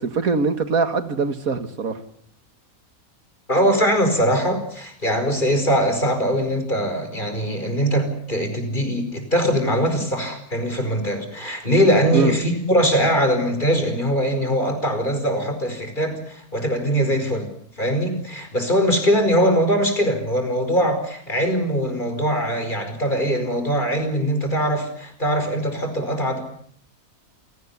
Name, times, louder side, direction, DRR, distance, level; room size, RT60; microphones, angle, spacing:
voice 1, 0.0-2.0 12.1-12.3, right 4 dB, 75° right, 2.1 m, -22 dB
voice 2, 3.5-17.5 17.8-26.4, equal, 35° left, 5.2 m, -21 dB
28.5 x 18.0 x 8.3 m
omnidirectional pair, 1.5 m